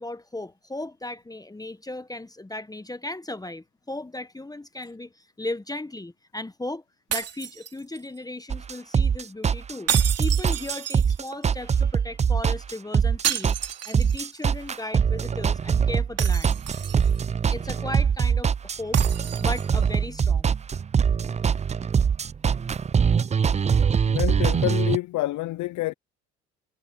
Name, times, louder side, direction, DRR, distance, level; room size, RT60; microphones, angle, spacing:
voice 1, 0.0-6.8 7.1-9.9 10.2-13.6 13.9-16.6 17.5-19.0 19.4-20.5, left 2 dB, 10° left, 1.3 m, -36 dB
sound 1, 7.1-8.2 9.9-11.4 13.2-14.5 14.8-14.9 16.2-17.3 18.9-19.9, right 9 dB, 50° right, 3.0 m, -31 dB
sound 2, 8.5-25.0, right 7 dB, 20° right, 0.5 m, -23 dB
voice 2, 24.1-25.9, left 18 dB, 60° left, 0.9 m, -27 dB
hypercardioid pair, 65°, 33 cm